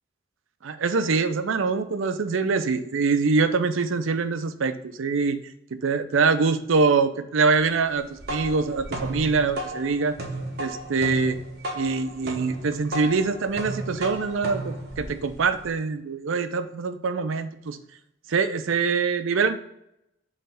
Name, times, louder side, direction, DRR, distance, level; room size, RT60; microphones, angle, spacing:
voice 1, 0.6-5.4 5.7-10.2 10.6-11.4 11.8-17.8 18.3-19.6, right 4 dB, 85° right, 10 dB, 0.5 m, -24 dB
sound 1, 7.9-15.7, right 1 dB, 50° right, 1.0 m, -34 dB
5.5 x 3.2 x 5.6 m, 0.78 s
head